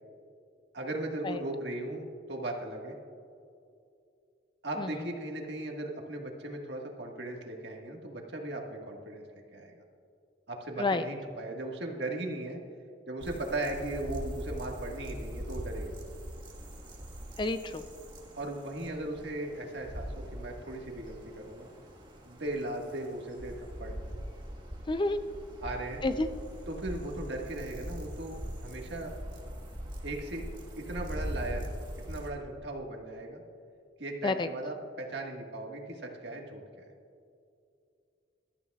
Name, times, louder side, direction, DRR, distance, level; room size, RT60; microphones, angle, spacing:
voice 1, 0.7-3.0 4.6-9.2 9.5-9.8 10.5-12.6 13.1-15.9 18.4-21.7 22.2-24.0 25.6-26.0 26.7-29.1 30.0-30.5 30.8-31.7 32.1-33.4 34.0-36.8, right 1 dB, 70° right, 1 dB, 1.6 m, -37 dB
sound 1, 13.2-32.3, equal, 25° right, 1.5 m, -42 dB
voice 2, 17.4-17.8 24.9-25.2 26.0-26.3 34.2-34.5, left 2 dB, 25° left, 10 dB, 0.4 m, -29 dB
21.5 x 12.5 x 2.4 m, 2.5 s
head